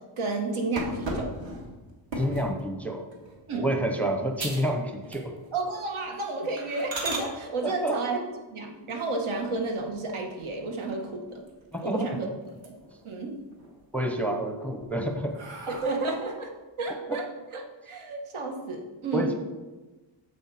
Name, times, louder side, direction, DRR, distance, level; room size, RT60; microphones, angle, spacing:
voice 1, 0.2-1.3 3.5-3.7 5.5-8.2 8.5-11.4 11.8-12.3 12.6-12.8 13.0-13.4 15.7-16.5 16.8-19.3, right 3 dB, 80° right, 2 dB, 1.5 m, -31 dB
sound 1, 0.8-2.5 3.1-3.4 3.8-3.9 4.4-4.7 5.0-5.6 5.9-6.1 6.6-7.3 9.3-9.9 10.4-10.5 10.9-11.0 11.3-12.1 12.4-13.0 13.4-14.1 14.6-16.3, right 2 dB, 65° right, 1.9 m, -36 dB
voice 2, 2.2-3.0 3.5-5.3 7.6-8.0 11.7-12.1 13.9-15.3 17.1-17.2 19.1-19.3, right 1 dB, 5° left, 3 dB, 0.6 m, -28 dB
8.4 x 6.9 x 4.1 m, 1.2 s
wide cardioid pair, 175°, 48 cm